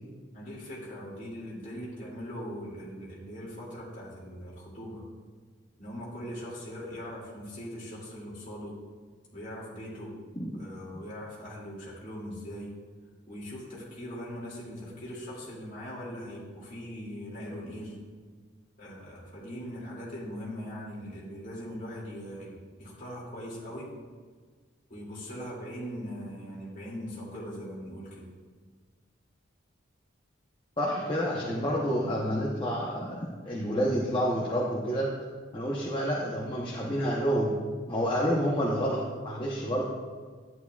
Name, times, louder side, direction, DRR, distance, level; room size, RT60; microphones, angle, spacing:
voice 1, 0.3-5.0 5.8-8.7 9.3-10.1 10.5-12.7 13.3-18.0 18.8-23.9 24.9-28.3, equal, 40° left, -5 dB, 2.4 m, -40 dB
voice 2, 30.8-35.1 35.5-37.5 37.9-39.8, equal, 25° left, -4 dB, 0.8 m, -29 dB
11.0 x 9.2 x 2.3 m, 1.5 s
head